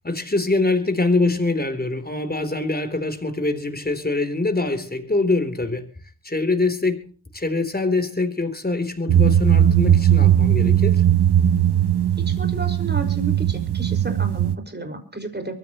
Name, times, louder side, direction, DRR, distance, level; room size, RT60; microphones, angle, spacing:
voice 1, 0.0-5.9 6.2-11.0, left 2 dB, 25° left, 3.5 m, -24 dB
sound 1, 9.1-14.5, right 10 dB, 90° right, 0.9 m, -18 dB
voice 2, 12.3-15.5, right 3 dB, 25° right, 5.6 m, -32 dB
23.5 x 15.5 x 3.1 m
cardioid pair, 50°, 38 cm